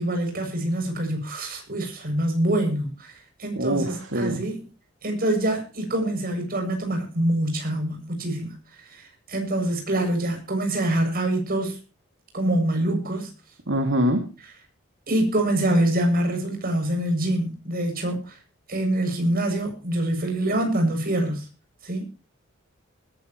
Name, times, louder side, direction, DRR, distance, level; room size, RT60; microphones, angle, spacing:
voice 1, 0.0-3.1 3.4-4.6 5.0-8.5 8.9-11.8 12.3-13.3 15.1-18.4 18.7-21.5 21.8-22.0, right 1 dB, 45° right, 4 dB, 7.6 m, -25 dB
voice 2, 3.6-4.4 13.7-14.3, right 1 dB, 65° right, 4 dB, 2.5 m, -24 dB
20.5 x 14.0 x 3.1 m, 0.34 s
head